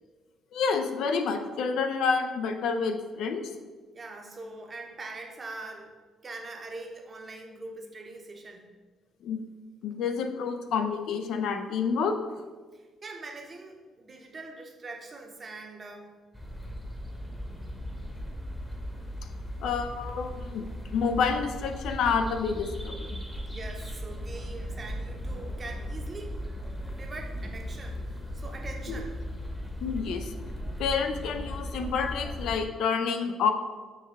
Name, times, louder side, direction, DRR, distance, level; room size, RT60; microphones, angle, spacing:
voice 1, 0.5-3.5 9.2-9.4 9.8-12.2 19.6-20.6 20.9-23.2 28.9-29.0 29.8-30.3 30.8-33.5, left 5 dB, 75° left, 6 dB, 0.4 m, -28 dB
voice 2, 3.9-5.9 6.2-8.7 12.7-16.1 23.5-26.4 26.8-29.1, right 3 dB, 35° right, 3 dB, 0.7 m, -43 dB
sound 1, 16.3-32.7, equal, 10° left, 0.8 m, -37 dB
6.5 x 2.2 x 3.4 m, 1.4 s
supercardioid pair, 75°, 0 cm